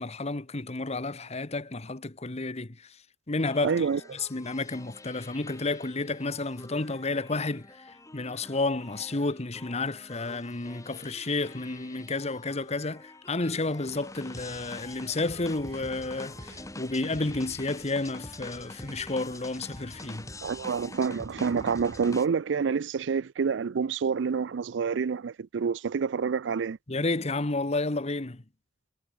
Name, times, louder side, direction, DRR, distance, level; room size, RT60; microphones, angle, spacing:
voice 1, 0.0-2.8 3.3-3.8 4.1-20.3 26.9-28.4, left 2 dB, 35° left, 1.2 m, -31 dB
sound 1, 3.4-22.3, left 2 dB, 20° left, 4.8 m, -46 dB
voice 2, 3.6-4.0 20.4-26.8, right 6 dB, 75° right, 0.4 m, -28 dB
sound 2, 13.9-21.1, right 3 dB, 60° right, 4.3 m, -58 dB
head